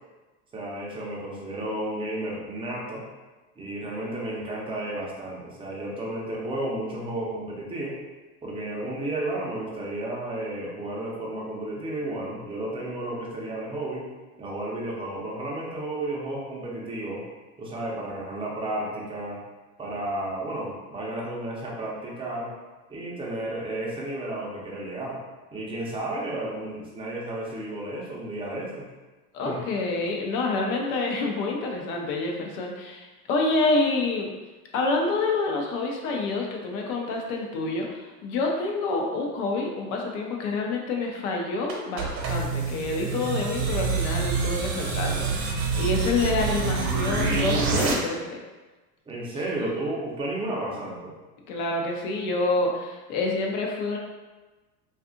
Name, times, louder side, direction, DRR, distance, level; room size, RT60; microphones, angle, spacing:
voice 1, 0.5-3.0 3.6-8.0 8.4-14.1 14.4-17.2 17.6-19.4 19.8-22.5 22.9-25.2 25.5-28.9 29.4-29.6 49.1-51.1, right 1 dB, 10° right, -4 dB, 0.5 m, -32 dB
voice 2, 29.3-34.3 34.7-48.4 49.6-49.7 51.5-54.0, left 3 dB, 65° left, 1 dB, 0.7 m, -27 dB
sound 1, 41.7-47.9, right 4 dB, 55° right, 0.8 m, -26 dB
2.6 x 2.4 x 2.5 m, 1.2 s
hypercardioid pair, 105°, 47 cm